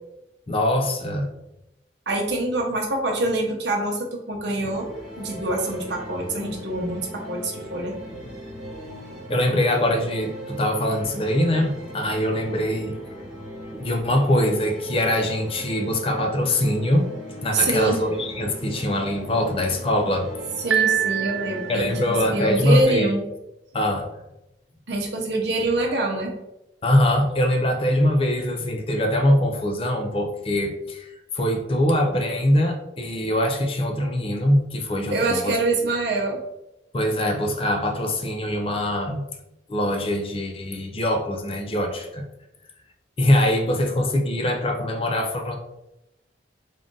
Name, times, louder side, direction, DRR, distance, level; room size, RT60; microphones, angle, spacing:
voice 1, 0.5-1.3 9.3-12.9 13.7-17.1 17.4-20.3 21.7-23.1 23.7-24.1 26.8-35.6 36.9-39.2 39.7-42.2 43.2-45.6, left 1 dB, 30° left, 3 dB, 0.5 m, -23 dB
voice 2, 2.1-4.9 5.2-7.9 17.5-18.0 20.6-23.2 24.9-26.3 35.1-36.4, right 2 dB, 70° right, 0 dB, 0.8 m, -25 dB
sound 1, 4.6-22.8, equal, ahead, 1.2 m, -38 dB
Piano, 20.7-22.0, right 9 dB, 85° right, 0.4 m, -24 dB
3.7 x 2.5 x 3.7 m, 0.88 s
head